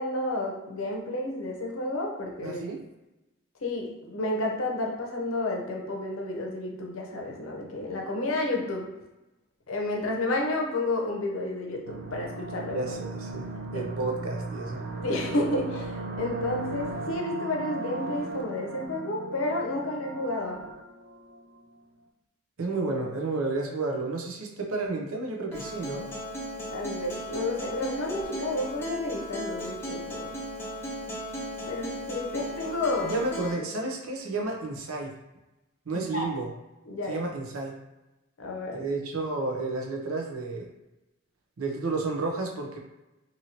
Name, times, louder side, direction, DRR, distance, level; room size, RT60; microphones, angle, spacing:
voice 1, 0.0-2.6 3.6-8.9 9.7-12.8 13.7-13.9 15.0-20.6 26.7-30.4 31.6-33.1 35.9-36.3 36.9-37.2 38.4-38.8, left 2 dB, 70° left, 0 dB, 0.6 m, -31 dB
voice 2, 2.4-2.8 12.7-14.8 22.6-26.1 33.0-35.2 35.9-36.5 37.1-37.7 38.7-40.7 41.6-42.8, right 3 dB, 85° right, 0 dB, 0.6 m, -31 dB
sound 1, 11.9-21.6, right 2 dB, 45° right, 0.4 m, -37 dB
Acoustic guitar, 25.5-33.5, equal, 10° left, 0.6 m, -36 dB
2.9 x 2.7 x 2.7 m, 1.0 s
head